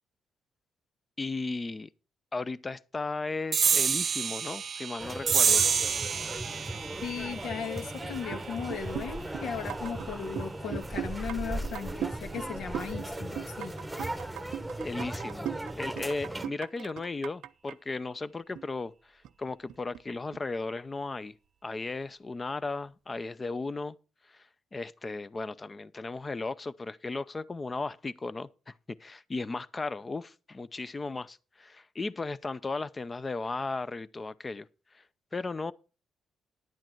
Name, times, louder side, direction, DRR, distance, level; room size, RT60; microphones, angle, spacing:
voice 1, 1.2-1.9 2.3-5.7 14.8-21.3 21.6-24.0 24.3-24.5 24.7-28.7 29.0-34.7 34.9-35.0 35.3-35.7, left 3 dB, 25° left, 0.6 m, -36 dB
sound 1, 3.5-10.4, right 7 dB, 50° right, 0.8 m, -30 dB
sound 2, 5.0-16.5, right 1 dB, 5° right, 1.1 m, -38 dB
voice 2, 7.0-13.8, left 7 dB, 75° left, 1.6 m, -37 dB
sound 3, 8.0-8.4 8.7-10.1 10.4-11.4 11.6-12.5 12.7-13.1 13.4-17.8 18.1-18.2 18.6-18.8 19.2-20.0 20.3-20.4, right 10 dB, 80° right, 0.5 m, -38 dB
10.5 x 8.7 x 4.6 m
cardioid pair, 90°, 0 cm